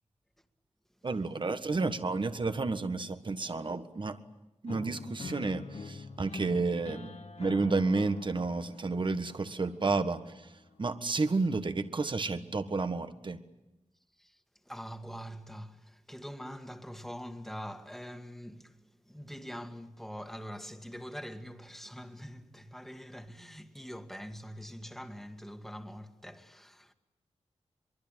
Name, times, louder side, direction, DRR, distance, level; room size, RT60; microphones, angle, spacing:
voice 1, 1.0-4.2 4.6-10.2 10.8-13.4, right 3 dB, 45° right, 1.5 m, -31 dB
sound 1, 4.7-10.6, left 4 dB, 75° left, 1.7 m, -45 dB
voice 2, 14.2-26.9, equal, 5° left, 2.0 m, -44 dB
24.0 x 23.5 x 9.0 m
wide cardioid pair, 75°, 11 cm